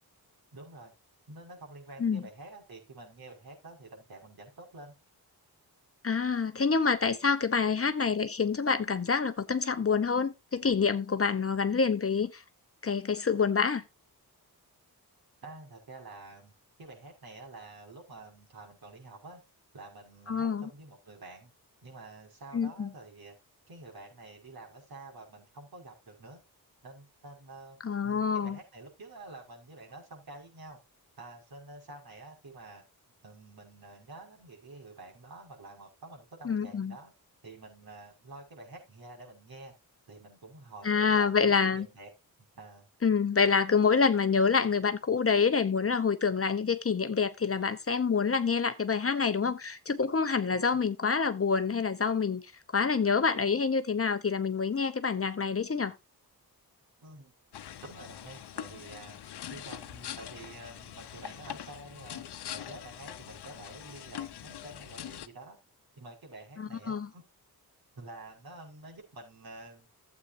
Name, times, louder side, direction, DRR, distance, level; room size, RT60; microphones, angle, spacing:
voice 1, 0.5-0.9 1.3-4.9 15.4-19.4 19.7-21.5 21.8-23.3 23.7-26.4 26.8-30.8 31.2-32.8 33.2-37.1 37.4-39.7 40.1-42.1 42.5-42.9 50.5-50.9 57.0-57.3 57.8-59.2 59.5-62.2 62.5-65.6 66.0-67.2 67.9-69.9, right 2 dB, 65° right, 5.9 m, -49 dB
voice 2, 6.0-12.4 12.8-13.8 20.3-20.6 22.5-22.9 27.8-28.6 36.4-36.9 40.8-41.9 43.0-52.4 52.7-55.9 66.6-67.1, left 5 dB, 35° left, 0.9 m, -27 dB
sound 1, 57.5-65.3, left 10 dB, 85° left, 0.8 m, -43 dB
15.0 x 8.2 x 2.7 m
wide cardioid pair, 95°, 39 cm